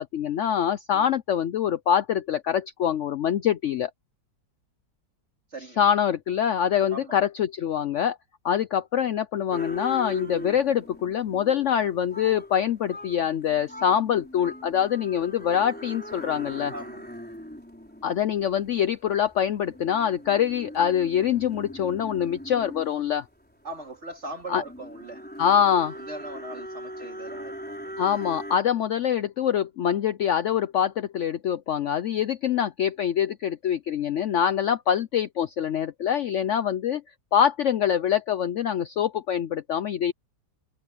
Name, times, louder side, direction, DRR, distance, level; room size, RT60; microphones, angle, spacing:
voice 1, 0.0-3.9 5.8-8.2 8.4-16.7 18.0-23.2 24.5-24.6 25.4-25.9 28.0-37.0 37.3-40.1, left 9 dB, 80° left, 0.6 m, -24 dB
voice 2, 5.5-5.9 6.9-7.2 16.7-17.1 23.6-25.2 25.5-27.9, right 1 dB, 35° right, 3.8 m, -40 dB
sound 1, 9.5-28.6, equal, 5° left, 4.1 m, -41 dB
omnidirectional pair, 2.0 m